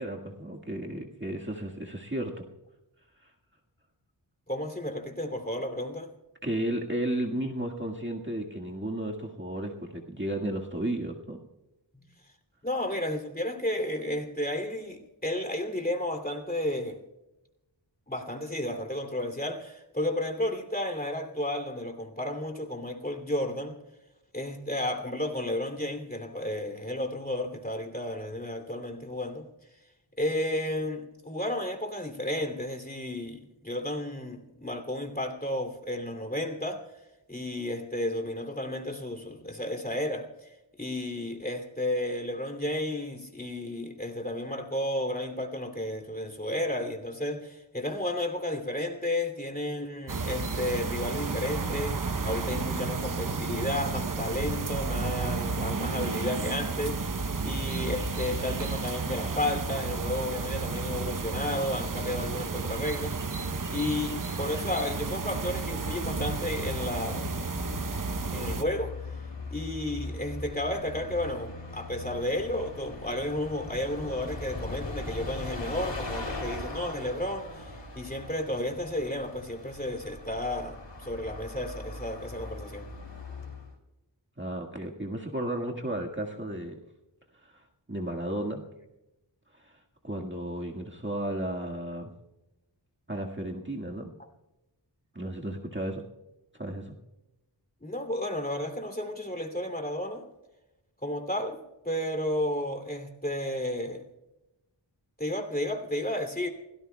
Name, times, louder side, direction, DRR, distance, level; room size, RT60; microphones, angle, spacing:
voice 1, 0.0-2.4 6.4-11.4 84.4-86.7 87.9-88.6 90.0-92.1 93.1-94.1 95.1-96.0 96.6-97.0, right 1 dB, 25° right, 0 dB, 1.8 m, -33 dB
voice 2, 4.5-6.1 12.6-17.0 18.1-23.8 24.3-29.5 30.2-36.8 37.3-40.3 40.8-57.1 57.4-67.3 68.3-68.9 69.5-82.9 97.8-100.2 101.0-101.6 101.8-104.0 105.2-106.5, left 1 dB, 20° left, 5 dB, 2.8 m, -32 dB
sound 1, 50.1-68.6, right 4 dB, 45° right, 0.9 m, -32 dB
Bus, 65.2-83.7, left 2 dB, 70° left, 2.9 m, -40 dB
28.0 x 18.0 x 2.3 m, 0.96 s
wide cardioid pair, 50°, 45 cm